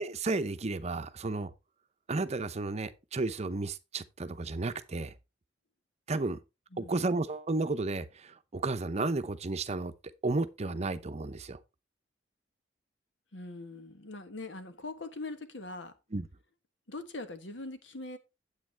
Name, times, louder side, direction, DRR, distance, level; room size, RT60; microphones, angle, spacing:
voice 1, 0.0-1.5 2.1-5.1 6.1-6.4 6.8-9.9 10.2-11.6 16.1-16.2, right 3 dB, 35° right, 0.7 m, -32 dB
voice 2, 6.7-7.2 13.3-15.9 16.9-18.2, left 2 dB, 80° left, 1.3 m, -42 dB
9.0 x 8.1 x 3.3 m
head